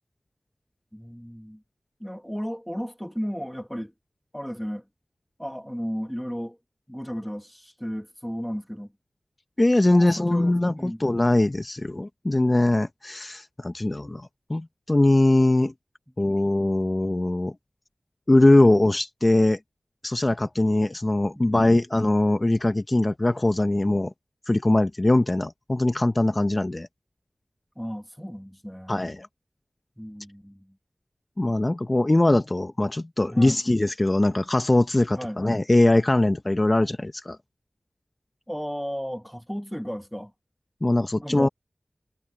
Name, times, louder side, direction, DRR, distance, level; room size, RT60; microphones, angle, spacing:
voice 1, 0.9-1.6 2.0-3.9 4.3-4.8 5.4-6.6 6.9-8.9 9.9-11.0 21.3-21.7 27.7-28.9 30.0-30.8 33.3-33.6 35.2-35.4 38.5-40.3 41.2-41.5, equal, ahead, 1.5 m, -34 dB
voice 2, 9.6-15.7 16.2-17.5 18.3-19.6 20.0-24.1 24.5-26.9 28.9-29.3 31.4-37.4 40.8-41.5, left 2 dB, 30° left, 0.7 m, -21 dB
wide cardioid pair, 60°, 0 cm